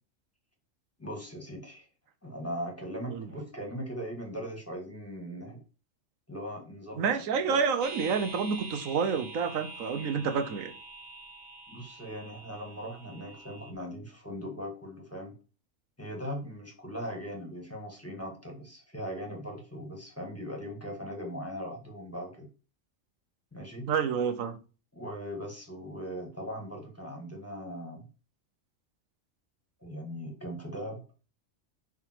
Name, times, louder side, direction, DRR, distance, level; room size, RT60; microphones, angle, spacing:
voice 1, 1.0-1.9 2.2-5.6 6.3-7.1 7.4-7.6 11.7-15.3 16.0-22.5 23.5-23.9 24.9-28.1 29.8-31.0, equal, 10° left, 1.7 m, -39 dB
voice 2, 6.9-10.7 23.9-24.6, right 6 dB, 85° right, 1.2 m, -29 dB
sound 1, 7.8-13.7, right 2 dB, 45° right, 1.3 m, -45 dB
10.5 x 3.8 x 4.5 m
omnidirectional pair, 1.4 m